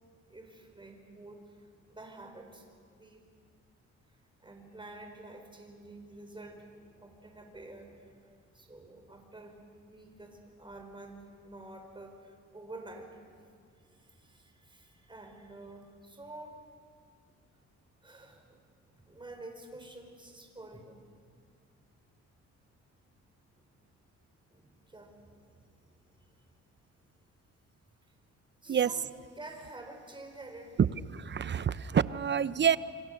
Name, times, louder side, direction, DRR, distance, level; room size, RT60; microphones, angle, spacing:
voice 1, 0.3-2.7 2.9-3.2 4.4-8.2 8.5-9.6 9.9-13.2 13.7-16.6 18.0-18.6 18.9-21.0 24.5-26.3 28.6-28.9 29.4-30.8, right 2 dB, 15° right, 4 dB, 4.7 m, -49 dB
voice 2, 31.1-32.8, right 8 dB, 35° right, 16 dB, 0.7 m, -27 dB
28.0 x 25.0 x 6.6 m, 2.1 s
cardioid pair, 90°, 30 cm